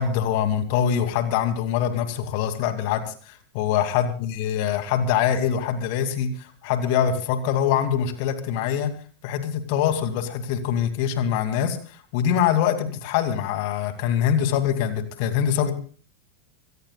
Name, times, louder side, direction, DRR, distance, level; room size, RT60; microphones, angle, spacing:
voice 1, 0.0-8.9 9.2-15.7, left 8 dB, 45° left, 8 dB, 2.6 m, -24 dB
25.0 x 17.5 x 2.4 m, 0.40 s
figure-of-eight pair, 90°, 0 cm